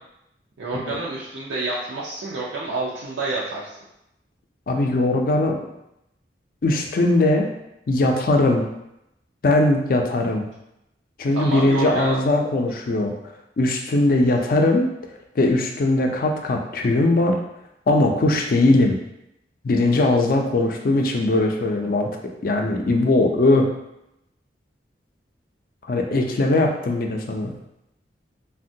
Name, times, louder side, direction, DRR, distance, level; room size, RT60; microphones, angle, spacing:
voice 1, 0.6-3.8 11.3-12.2, right 3 dB, 85° right, -6 dB, 0.5 m, -28 dB
voice 2, 4.7-5.6 6.6-7.5 7.9-8.7 9.4-10.5 11.2-13.1 13.6-14.9 15.4-17.4 17.9-19.0 19.6-22.1 22.4-23.7 25.9-27.5, left 2 dB, 50° left, 2 dB, 0.4 m, -20 dB
3.4 x 2.2 x 2.6 m, 0.85 s
head